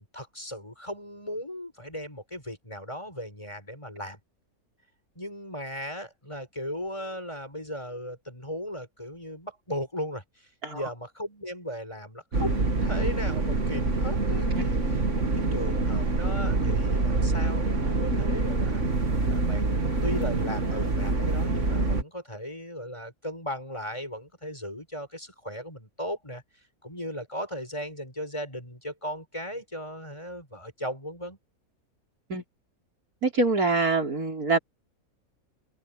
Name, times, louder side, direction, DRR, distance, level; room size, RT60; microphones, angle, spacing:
voice 1, 0.0-4.2 5.1-18.8 19.3-26.4 26.8-31.4, equal, 20° left, 7.0 m, -37 dB
sound 1, 12.3-22.0, right 3 dB, 55° right, 2.6 m, -26 dB
voice 2, 33.2-34.6, right 3 dB, 85° right, 4.8 m, -24 dB
omnidirectional pair, 1.5 m